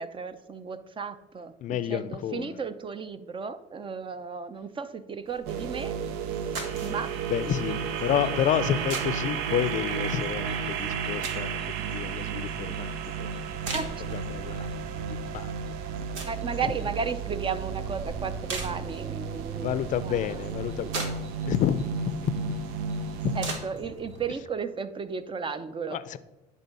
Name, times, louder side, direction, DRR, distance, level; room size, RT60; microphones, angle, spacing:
voice 1, 0.0-5.9 6.8-7.2 13.7-13.9 16.2-20.5 20.8-20.9 23.3-26.0, right 5 dB, 30° right, 12 dB, 0.7 m, -34 dB
voice 2, 1.6-2.6 7.3-11.6 11.9-12.9 14.0-14.7 15.1-15.5 19.6-21.1 21.5-22.3 23.2-23.3 25.9-26.2, left 10 dB, 50° left, 15 dB, 0.5 m, -29 dB
sound 1, 5.3-24.3, right 3 dB, 90° right, 1.2 m, -42 dB
sound 2, 5.5-23.6, right 6 dB, 75° right, 0.6 m, -33 dB
10.0 x 3.6 x 5.4 m, 1.0 s
supercardioid pair, 75°, 16 cm